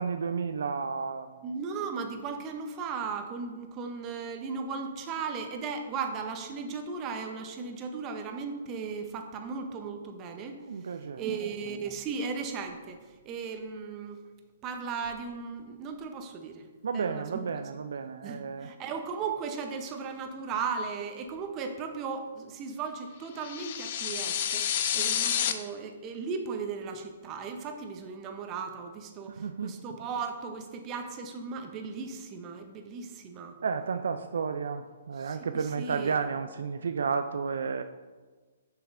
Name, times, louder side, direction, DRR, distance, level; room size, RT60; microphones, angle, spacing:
voice 1, 0.0-1.4 10.7-11.2 16.8-18.7 29.3-29.8 33.6-37.8, right 5 dB, 70° right, 9 dB, 0.3 m, -32 dB
voice 2, 1.4-14.2 14.6-16.7 16.9-17.4 18.2-33.6 35.2-36.2, right 5 dB, 30° right, 5 dB, 0.7 m, -36 dB
sound 1, 23.4-25.5, left 9 dB, 50° left, 0.5 m, -29 dB
6.9 x 5.8 x 2.6 m, 1.3 s
hypercardioid pair, 130°, 0 cm